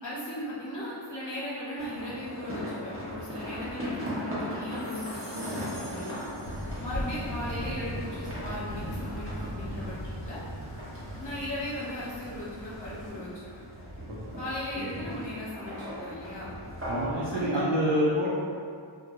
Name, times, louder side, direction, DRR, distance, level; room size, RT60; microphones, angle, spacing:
voice 1, 0.0-6.2 6.8-10.4 11.2-13.5 14.4-16.5 17.3-17.8, left 1 dB, 40° left, -10 dB, 0.9 m, -37 dB
sound 1, 1.8-17.2, equal, 25° right, 0.8 m, -39 dB
sound 2, 4.7-7.2, equal, ahead, 1.1 m, -48 dB
Thunder, 6.4-13.1, equal, 65° left, 0.6 m, -38 dB
voice 2, 16.9-18.3, equal, 60° right, -9 dB, 0.6 m, -27 dB
2.2 x 2.0 x 2.8 m, 2.3 s
wide cardioid pair, 40°, 49 cm